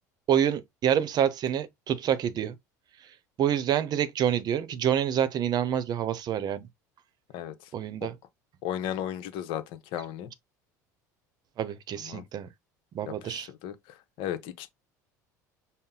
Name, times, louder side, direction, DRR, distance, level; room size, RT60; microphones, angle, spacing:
voice 1, 0.3-2.6 3.4-6.7 7.7-8.1 11.6-12.5 12.9-13.5, right 9 dB, 45° right, 0.7 m, -27 dB
voice 2, 8.6-9.6 9.9-10.3 12.0-12.2 13.2-13.7 14.2-14.7, left 11 dB, 60° left, 0.9 m, -34 dB
5.4 x 2.1 x 3.7 m
hypercardioid pair, 70°, 10 cm